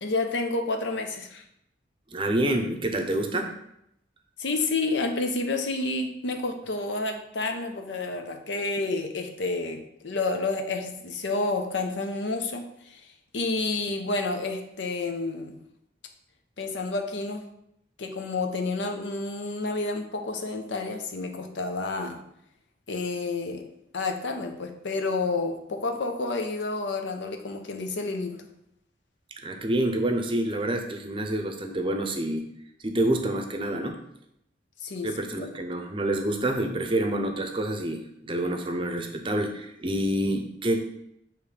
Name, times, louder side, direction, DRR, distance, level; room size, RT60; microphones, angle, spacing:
voice 1, 0.0-1.4 4.4-13.0 13.3-15.6 16.6-17.5 18.0-22.2 22.9-23.6 23.9-28.5 34.8-35.1 35.4-35.5, left 3 dB, 80° left, 5 dB, 0.7 m, -30 dB
voice 2, 2.1-3.5 29.4-32.5 32.8-34.0 35.0-40.8, right 1 dB, 30° right, 4 dB, 0.6 m, -27 dB
6.7 x 3.1 x 4.8 m, 0.78 s
head